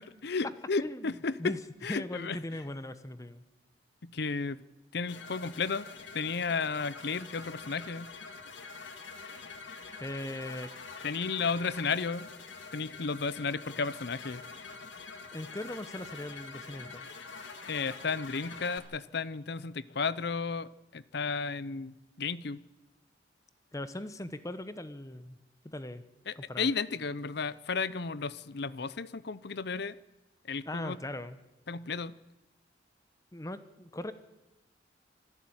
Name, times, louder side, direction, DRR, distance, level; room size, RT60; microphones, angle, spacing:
voice 1, 0.2-1.5 1.8-2.4 4.0-4.6 4.9-5.9 6.1-8.1 11.0-12.3 12.7-14.4 17.6-22.6 26.3-30.0 30.4-31.0 31.7-32.2, left 4 dB, 60° left, 18 dB, 0.7 m, -33 dB
voice 2, 0.8-1.1 1.4-1.6 1.9-3.4 10.0-10.7 15.3-17.1 23.7-25.4 25.6-26.0 26.4-26.7 30.7-31.4 33.3-34.1, left 1 dB, 20° left, 12 dB, 0.9 m, -39 dB
sound 1, 5.1-18.8, left 4 dB, 85° left, 2.2 m, -46 dB
25.5 x 12.0 x 8.8 m, 1.0 s
head